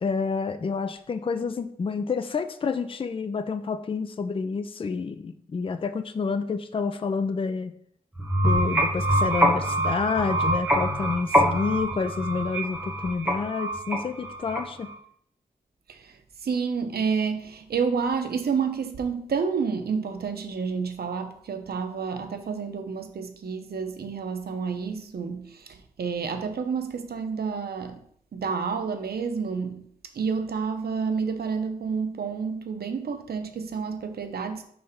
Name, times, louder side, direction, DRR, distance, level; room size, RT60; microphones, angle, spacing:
voice 1, 0.0-7.7 8.4-14.9, left 5 dB, 35° left, 10 dB, 0.4 m, -29 dB
sound 1, 8.1-14.9, right 1 dB, 10° right, 1.3 m, -25 dB
voice 2, 15.9-28.0 28.3-34.6, right 5 dB, 90° right, 6 dB, 0.8 m, -29 dB
5.4 x 3.3 x 5.7 m, 0.64 s
wide cardioid pair, 135°, 16 cm